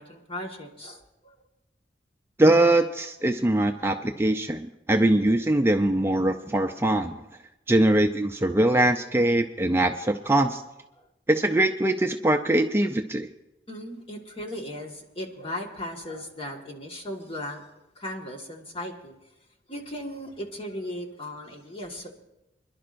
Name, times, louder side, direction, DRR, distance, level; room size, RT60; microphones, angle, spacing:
voice 1, 0.0-1.3 3.8-4.1 11.0-11.1 13.7-17.6 17.9-19.1 19.7-22.1, left 1 dB, 30° left, 2 dB, 1.6 m, -37 dB
voice 2, 2.4-7.2 7.7-10.6 11.3-13.3, right 1 dB, 15° right, 5 dB, 0.4 m, -22 dB
28.0 x 11.0 x 2.6 m, 0.95 s
head